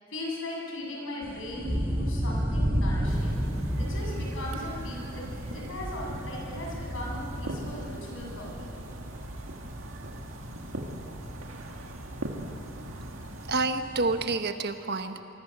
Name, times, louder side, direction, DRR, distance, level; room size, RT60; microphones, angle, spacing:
voice 1, 0.1-3.4 3.8-8.8, left 1 dB, 70° left, -2 dB, 7.9 m, -38 dB
sound 1, 1.2-14.2, equal, 10° right, 2.0 m, -33 dB
sound 2, 3.1-13.6, right 1 dB, 70° right, 2.2 m, -40 dB
voice 2, 13.5-15.2, right 3 dB, 55° right, 8 dB, 1.3 m, -28 dB
25.0 x 24.0 x 8.2 m, 2.7 s
head